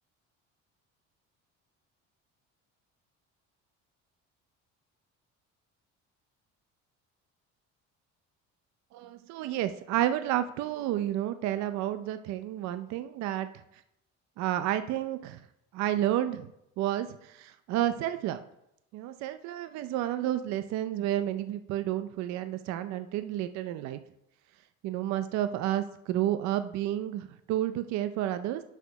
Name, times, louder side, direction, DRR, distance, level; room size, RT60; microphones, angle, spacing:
voice 1, 8.9-13.5 14.4-15.4 15.7-16.5 16.8-18.4 18.9-24.0 24.8-28.6, right 12 dB, 65° right, 10 dB, 0.6 m, -31 dB
7.9 x 4.9 x 5.6 m, 0.80 s
cardioid pair, 165°, 30 cm